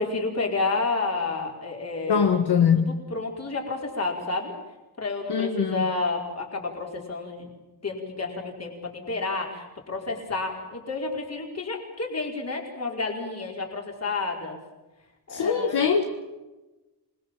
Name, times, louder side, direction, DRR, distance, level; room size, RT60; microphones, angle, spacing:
voice 1, 0.0-2.3 2.7-4.5 5.0-7.5 7.8-14.6 15.3-15.9, left 3 dB, 40° left, 0 dB, 5.1 m, -30 dB
voice 2, 2.1-2.9 5.3-5.9 15.3-16.0, left 7 dB, 70° left, 4 dB, 1.8 m, -22 dB
27.5 x 21.0 x 7.5 m, 1.1 s
wide cardioid pair, 165°, 40 cm